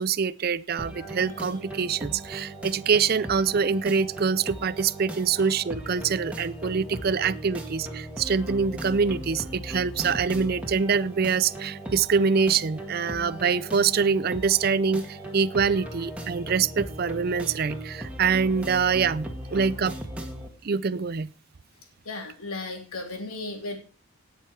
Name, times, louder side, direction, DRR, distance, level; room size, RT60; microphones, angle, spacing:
voice 1, 0.0-19.9 20.6-21.3, right 5 dB, 45° right, 0.5 m, -25 dB
sound 1, 0.8-20.5, right 1 dB, 5° right, 1.8 m, -38 dB
voice 2, 22.1-23.8, left 2 dB, 90° left, 3.5 m, -35 dB
18.0 x 6.7 x 4.6 m
head